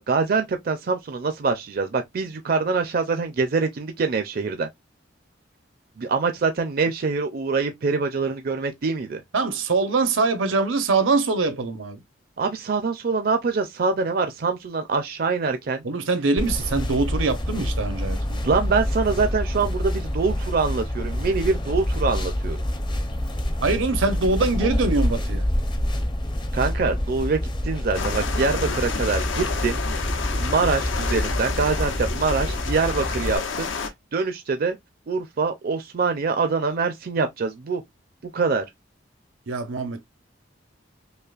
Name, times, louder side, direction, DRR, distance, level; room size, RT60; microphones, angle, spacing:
voice 1, 0.0-4.7 6.0-9.2 12.4-15.8 18.4-22.6 26.5-29.8 30.4-34.8 35.1-37.8 38.3-38.6, right 4 dB, 50° right, 0.4 m, -24 dB
voice 2, 9.3-12.0 15.8-18.5 23.6-25.4 39.5-40.0, right 3 dB, 85° right, 0.8 m, -23 dB
sound 1, 16.4-33.4, left 1 dB, 25° left, 0.6 m, -27 dB
sound 2, 27.9-33.9, left 5 dB, 75° left, 0.7 m, -30 dB
5.4 x 2.1 x 2.4 m
head